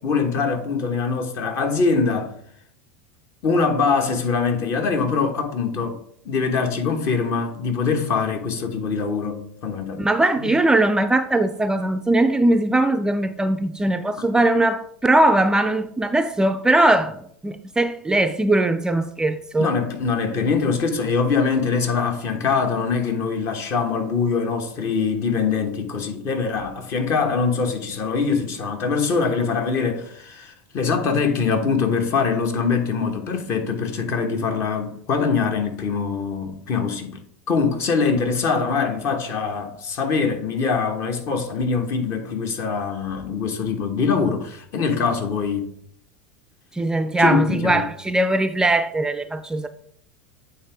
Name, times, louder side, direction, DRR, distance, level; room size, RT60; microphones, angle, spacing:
voice 1, 0.0-2.3 3.4-6.0 6.2-10.0 10.4-10.5 14.2-14.3 19.6-37.2 37.5-45.7 47.2-47.8, left 5 dB, 45° left, 1.2 m, -23 dB
voice 2, 10.0-19.7 46.7-49.7, right 2 dB, 10° right, 0.4 m, -20 dB
8.5 x 3.9 x 3.4 m
hypercardioid pair, 85°, 7 cm